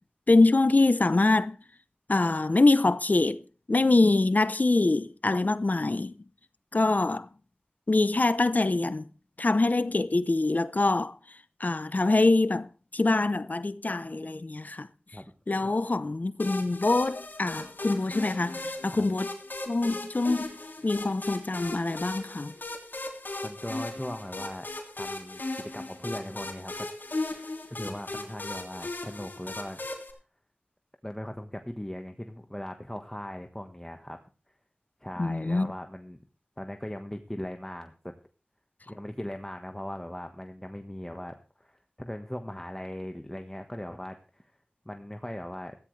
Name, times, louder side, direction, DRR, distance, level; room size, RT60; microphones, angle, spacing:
voice 1, 0.3-1.6 2.1-3.4 3.7-6.1 6.7-7.3 7.9-9.0 9.4-11.1 11.6-14.9 15.5-19.3 19.7-20.5 20.8-22.5 35.2-35.7, left 2 dB, 55° left, 0.8 m, -24 dB
sound 1, 16.4-30.1, left 2 dB, 75° left, 3.1 m, -37 dB
voice 2, 23.4-24.7 24.9-25.4 25.7-26.9 27.3-29.8 31.0-34.2 35.0-36.2 36.6-38.2 38.9-44.6 44.8-45.8, left 1 dB, 15° left, 1.4 m, -39 dB
16.5 x 14.5 x 3.3 m
wide cardioid pair, 55°, 3 cm